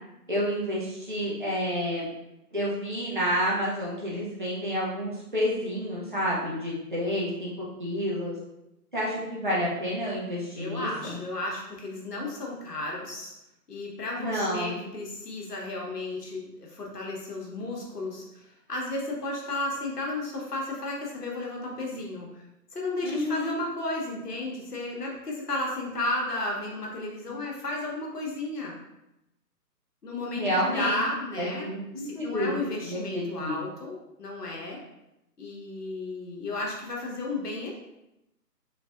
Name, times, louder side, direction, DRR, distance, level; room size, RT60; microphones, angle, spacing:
voice 1, 0.3-2.1 2.5-8.4 8.9-11.2 14.2-14.8 23.0-23.5 30.4-31.0 31.4-32.5 32.8-33.6, equal, 35° right, -7 dB, 0.5 m, -29 dB
voice 2, 10.5-13.3 13.7-22.4 22.7-28.7 30.0-31.7 32.0-34.8 35.4-37.8, left 2 dB, 70° left, -2 dB, 1.0 m, -33 dB
3.2 x 2.5 x 2.3 m, 0.90 s
figure-of-eight pair, 145°, 49 cm